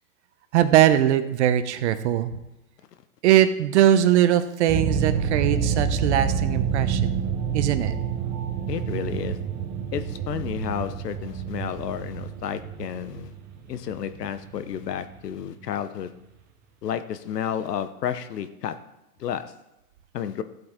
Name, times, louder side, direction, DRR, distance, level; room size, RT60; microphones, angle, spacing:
voice 1, 0.5-2.3 3.2-7.3 7.5-7.9, right 11 dB, 45° right, 12 dB, 0.8 m, -21 dB
sound 1, 4.7-15.7, right 6 dB, 20° right, 1.0 m, -28 dB
voice 2, 8.7-9.4 9.9-13.3 13.7-16.1 16.8-18.8 19.2-19.4 20.1-20.4, left 9 dB, 90° left, 12 dB, 1.0 m, -31 dB
13.5 x 8.0 x 3.6 m, 0.93 s
hypercardioid pair, 145°, 47 cm